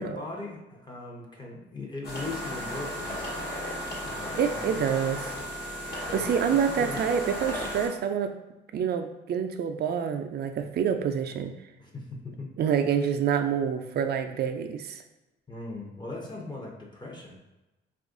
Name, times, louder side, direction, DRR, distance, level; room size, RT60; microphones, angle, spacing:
voice 1, 0.0-3.4 4.0-4.7 6.0-7.2 11.8-12.5 15.5-17.4, left 2 dB, 20° left, -1 dB, 0.7 m, -39 dB
sound 1, 2.0-7.9, equal, 55° left, 1.2 m, -35 dB
voice 2, 4.4-5.3 5.9-8.3 8.7-11.5 12.6-15.0, right 7 dB, 55° right, 7 dB, 0.4 m, -27 dB
2.9 x 2.4 x 3.7 m, 1.0 s
cardioid pair, 90°, 20 cm